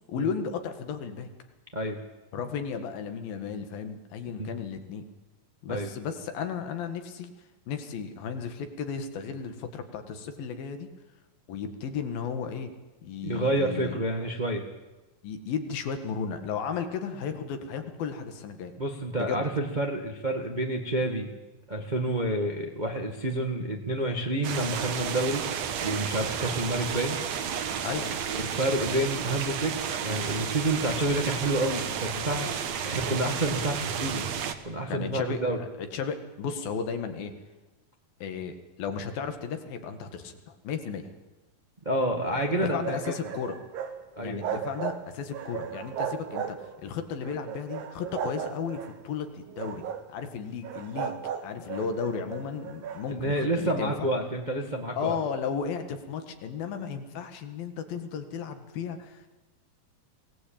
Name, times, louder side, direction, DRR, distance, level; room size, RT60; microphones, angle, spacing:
voice 1, 0.1-1.3 2.3-5.0 5.6-7.3 7.7-10.9 11.5-12.7 13.0-14.0 15.2-18.7 19.2-19.5 27.8-28.2 34.9-37.3 38.2-41.1 42.5-43.6 44.2-49.8 50.1-54.1 55.0-59.3, left 6 dB, 80° left, 7 dB, 3.6 m, -34 dB
voice 2, 13.2-14.6 18.8-21.3 21.7-25.4 25.8-27.2 28.3-32.5 32.8-34.3 34.6-35.6 41.8-43.1 44.2-44.4 53.1-55.1, right 1 dB, 25° right, 2 dB, 0.9 m, -29 dB
sound 1, 24.4-34.5, right 8 dB, 60° right, 2.2 m, -32 dB
sound 2, 42.0-44.0 44.2-45.0 45.3-46.8 47.2-48.9 49.5-50.1 50.6-53.0, right 8 dB, 80° right, 3.3 m, -36 dB
23.0 x 18.0 x 8.8 m, 1.1 s
omnidirectional pair, 4.1 m